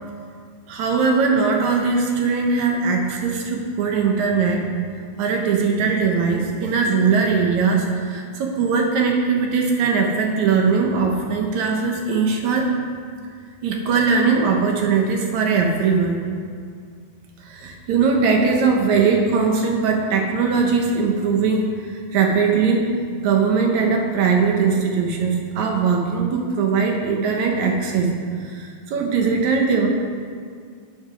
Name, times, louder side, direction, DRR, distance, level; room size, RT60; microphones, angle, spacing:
voice 1, 0.7-4.7 5.2-12.7 13.6-16.2 17.4-22.9 23.2-28.1 28.4-29.9, right 5 dB, 65° right, 1 dB, 2.0 m, -20 dB
7.9 x 7.7 x 6.1 m, 2.1 s
omnidirectional pair, 4.1 m